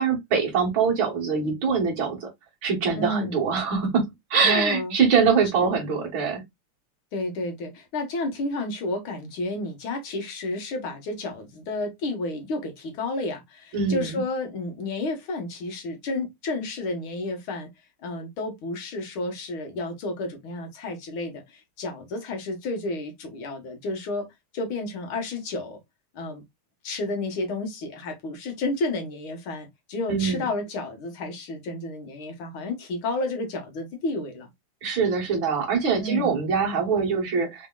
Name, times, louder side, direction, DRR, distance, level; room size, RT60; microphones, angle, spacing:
voice 1, 0.0-2.3 2.6-6.4 13.7-14.2 30.1-30.5 34.8-37.7, right 5 dB, 65° right, 2.3 m, -23 dB
voice 2, 3.0-3.4 4.4-5.0 5.6-5.7 7.1-17.7 18.0-24.3 24.5-25.8 26.1-26.4 26.8-34.5 36.0-36.4, left 2 dB, 75° left, 2.1 m, -31 dB
5.0 x 3.4 x 2.2 m
omnidirectional pair, 2.4 m